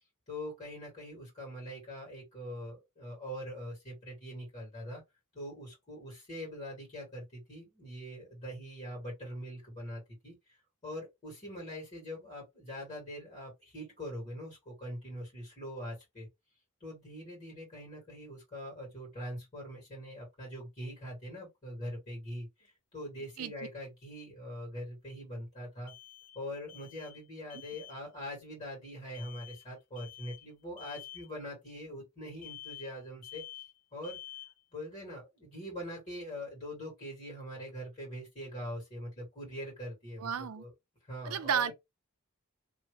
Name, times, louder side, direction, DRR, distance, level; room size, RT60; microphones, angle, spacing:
voice 1, 0.3-5.0 5.3-10.6 10.8-16.3 16.8-25.9 26.3-33.4 33.9-34.2 34.7-40.7 41.0-41.7, equal, 35° left, 2.0 m, -43 dB
sound 1, 22.6-22.7 25.9-26.4 26.7-27.2 27.5-28.0 29.1-29.6 29.9-30.4 30.8-31.3 32.4-33.0 33.2-33.8 34.0-34.6, left 13 dB, 80° left, 1.1 m, -49 dB
voice 2, 40.2-40.6 41.2-41.7, right 8 dB, 80° right, 0.5 m, -32 dB
3.0 x 2.8 x 3.2 m
head